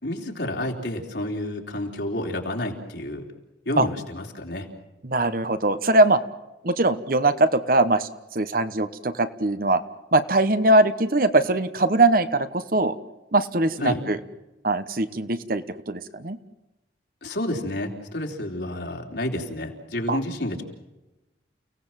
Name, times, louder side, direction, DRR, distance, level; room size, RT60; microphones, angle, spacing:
voice 1, 0.0-3.2 3.7-4.7 13.8-14.0 17.2-20.6, left 1 dB, 70° left, 1 dB, 3.9 m, -30 dB
voice 2, 5.0-6.2 6.6-9.8 10.1-13.0 13.3-14.2 14.6-16.4 20.1-20.2, right 2 dB, 50° right, 11 dB, 1.2 m, -21 dB
30.0 x 17.5 x 7.5 m, 1.0 s
head